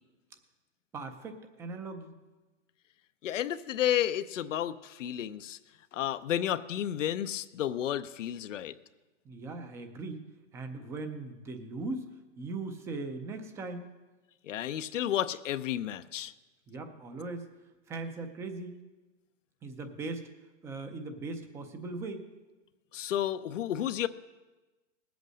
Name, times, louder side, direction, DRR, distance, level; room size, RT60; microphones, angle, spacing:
voice 1, 0.9-2.1 9.2-10.2 10.5-12.1 12.4-13.9 16.7-17.5 17.9-18.8 19.6-20.2 20.6-22.3, right 3 dB, 10° right, 7 dB, 0.4 m, -39 dB
voice 2, 3.2-5.6 5.9-8.7 14.4-16.3 22.9-24.1, left 11 dB, 85° left, 11 dB, 0.7 m, -31 dB
19.0 x 8.2 x 6.3 m, 1.2 s
hypercardioid pair, 155°, 36 cm